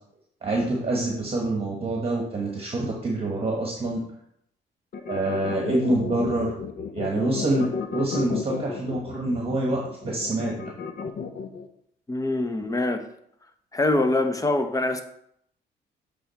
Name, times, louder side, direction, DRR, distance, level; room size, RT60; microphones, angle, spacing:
voice 1, 0.4-4.0 5.1-6.5 6.9-10.7, right 2 dB, 30° right, 1.3 m, -26 dB
sound 1, 4.9-11.7, left 5 dB, 50° left, 0.6 m, -33 dB
voice 2, 12.1-13.1 13.7-15.0, left 2 dB, 15° left, 0.7 m, -24 dB
7.7 x 3.5 x 4.2 m
cardioid pair, 90°, 20 cm